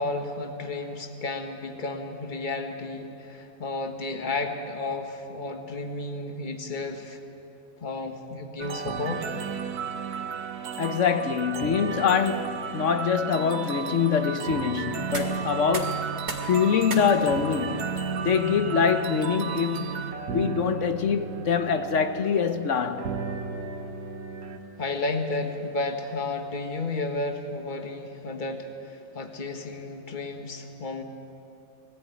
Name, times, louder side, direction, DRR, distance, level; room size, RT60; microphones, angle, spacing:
voice 1, 0.0-7.2 7.8-9.2 24.8-31.0, left 3 dB, 30° left, 1.5 m, -32 dB
sound 1, 8.6-24.6, right 6 dB, 85° right, 1.6 m, -33 dB
voice 2, 10.8-16.1 16.4-17.9 18.2-19.9 20.3-23.1, left 7 dB, 60° left, 1.1 m, -24 dB
sound 2, 14.9-26.7, right 2 dB, 65° right, 2.8 m, -44 dB
20.5 x 15.0 x 9.2 m
omnidirectional pair, 1.6 m